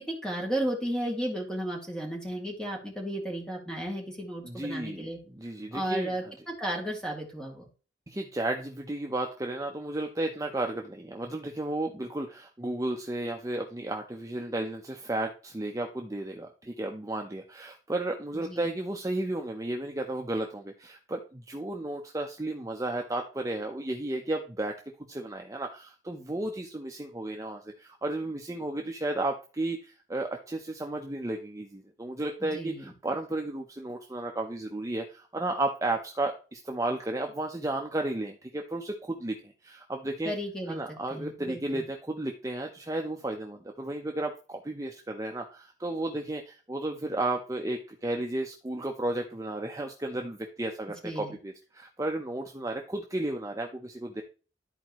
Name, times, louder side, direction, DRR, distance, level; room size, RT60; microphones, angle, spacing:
voice 1, 0.0-5.2 5.7-7.7 18.3-18.7 32.4-32.9 40.2-40.8 41.1-41.8 51.0-51.3, right 1 dB, 5° left, -1 dB, 2.3 m, -34 dB
voice 2, 4.4-6.1 8.1-24.7 25.1-40.3 40.7-54.2, right 2 dB, 20° right, 2 dB, 0.7 m, -33 dB
13.0 x 4.5 x 3.0 m, 0.34 s
head